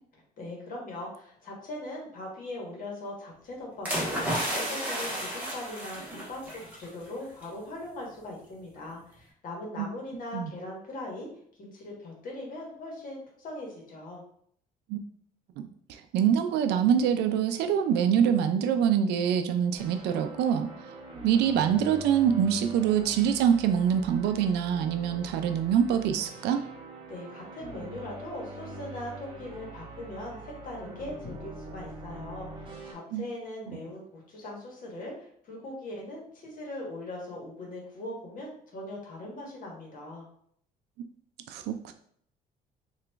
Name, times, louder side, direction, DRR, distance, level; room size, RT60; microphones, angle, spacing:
voice 1, 0.4-4.2 4.5-11.3 11.6-14.2 27.1-40.3, left 1 dB, 55° left, -1 dB, 1.2 m, -40 dB
sound 1, 3.9-6.9 7.2-7.4, equal, 10° right, 1.2 m, -32 dB
voice 2, 16.1-20.7 21.2-26.6 33.1-33.2 41.5-41.9, right 8 dB, 80° right, 7 dB, 0.4 m, -25 dB
sound 2, 19.7-32.9, right 2 dB, 30° right, 0.9 m, -44 dB
2.9 x 2.4 x 3.4 m, 0.64 s
cardioid pair, 110°, 17 cm